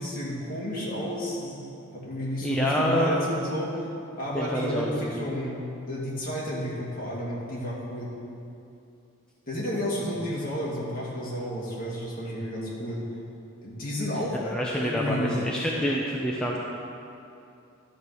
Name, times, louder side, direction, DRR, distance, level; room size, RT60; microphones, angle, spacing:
voice 1, 0.0-3.7 4.2-8.1 9.5-13.0 13.6-15.4, equal, 45° left, -6 dB, 2.3 m, -31 dB
voice 2, 2.4-3.1 4.3-5.3 14.3-16.6, equal, 5° left, -4 dB, 0.6 m, -27 dB
11.5 x 4.7 x 6.9 m, 2.6 s
head